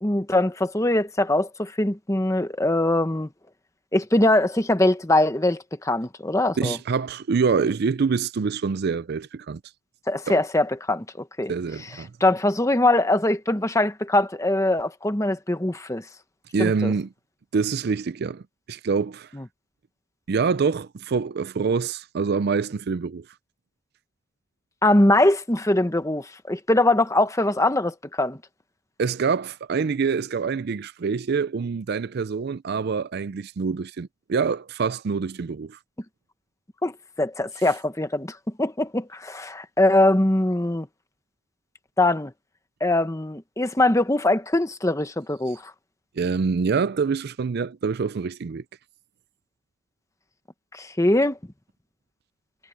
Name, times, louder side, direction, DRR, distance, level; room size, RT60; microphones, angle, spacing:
voice 1, 0.0-3.3 3.9-6.8 10.1-11.5 12.2-16.0 16.6-16.9 19.4-19.5 24.8-28.4 36.8-40.9 42.0-42.3 42.8-45.7 50.7-51.4, left 1 dB, 15° left, 1.1 m, -22 dB
voice 2, 6.6-9.6 10.3-10.4 11.5-12.1 16.5-17.1 17.5-18.4 18.7-19.3 20.3-23.3 29.0-35.8 46.2-48.6, right 5 dB, 50° right, 0.4 m, -25 dB
head